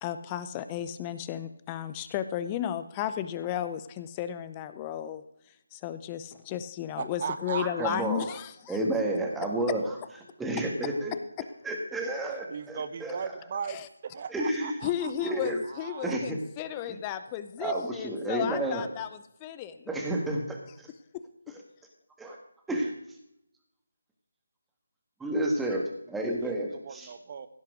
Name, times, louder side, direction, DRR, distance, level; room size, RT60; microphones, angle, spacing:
voice 1, 0.0-5.2 5.7-8.8 13.7-13.9 14.8-19.1 19.4-19.9 21.1-21.2, left 10 dB, 20° left, 12 dB, 0.5 m, -34 dB
voice 2, 7.0-8.0 12.5-16.2 26.4-27.5, right 6 dB, 40° right, 11 dB, 1.1 m, -38 dB
voice 3, 7.6-8.2 8.7-9.9 10.4-11.1 11.6-13.2 14.3-14.8 15.2-15.6 16.0-16.4 16.9-17.0 17.6-18.9 19.9-20.9 22.2-22.4 22.7-22.9 25.2-27.1, right 1 dB, 5° right, 1 dB, 1.6 m, -30 dB
16.0 x 5.7 x 6.3 m, 0.77 s
figure-of-eight pair, 155°, 0 cm